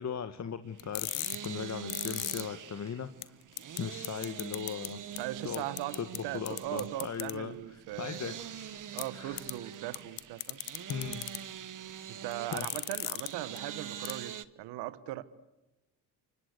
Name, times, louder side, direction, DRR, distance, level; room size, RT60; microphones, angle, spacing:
voice 1, 0.0-3.4 3.8-5.0 5.4-5.6 5.9-8.8 9.1-9.4 10.9-11.5 12.5-12.7, left 7 dB, 40° left, 1.6 m, -38 dB
Chainsaw Moderately Distant A, 0.7-14.4, right 9 dB, 50° right, 1.4 m, -44 dB
sound 1, 0.8-2.4 2.9-3.0 3.2-3.3 3.6-3.8 4.0-4.9 5.2-5.3 5.5-6.2 6.5-7.3 9.0-9.1 9.4-9.5 9.9-11.4 12.3-13.3 13.6-13.7 14.0-14.1, left 24 dB, 90° left, 1.0 m, -35 dB
voice 2, 5.2-8.4 8.9-10.6 12.1-15.2, right 15 dB, 80° right, 1.3 m, -39 dB
28.0 x 25.0 x 8.1 m
supercardioid pair, 60°, 40 cm